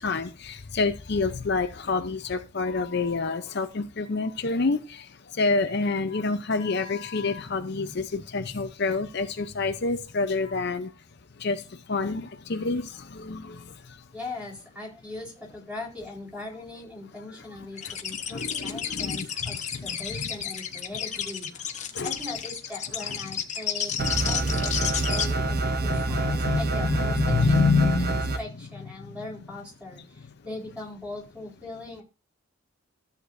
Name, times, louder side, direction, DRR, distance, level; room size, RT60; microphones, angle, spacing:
voice 1, 0.0-10.9 11.4-14.0 17.8-18.0 18.3-20.2 21.9-22.2 23.0-23.2 24.0-24.1 25.5-25.6 25.9-28.4 29.0-29.2, left 3 dB, 55° left, 0.7 m, -28 dB
voice 2, 14.1-27.6 28.1-32.0, left 2 dB, 5° right, 4.2 m, -40 dB
sound 1, 17.8-25.3, left 8 dB, 35° left, 1.1 m, -31 dB
sound 2, 24.0-28.4, right 2 dB, 45° right, 0.7 m, -27 dB
13.5 x 8.2 x 2.6 m
head